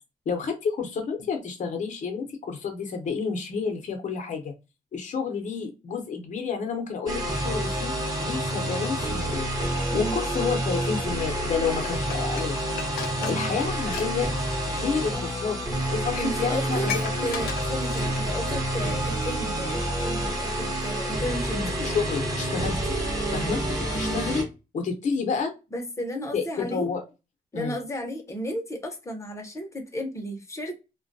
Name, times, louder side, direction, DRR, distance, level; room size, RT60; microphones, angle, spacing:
voice 1, 0.3-4.5 4.9-9.5 9.9-12.6 13.3-14.3 14.7-15.6 15.9-17.1 21.5-23.0 23.3-24.4 24.7-25.5 26.3-27.0 27.5-27.8, left 5 dB, 55° left, 0.7 m, -30 dB
sound 1, 7.1-24.4, right 1 dB, 25° right, 0.9 m, -28 dB
Dishes pots and pans, 11.7-14.1 14.4-14.6 15.4-15.5 15.9-16.0 16.2-18.4 18.8-18.9, left 8 dB, 80° left, 0.4 m, -37 dB
voice 2, 16.2-16.9 17.2-21.6 23.9-24.2 25.7-26.9 27.5-30.8, equal, 20° left, 0.7 m, -33 dB
2.2 x 2.1 x 2.6 m
cardioid pair, 105°, 15 cm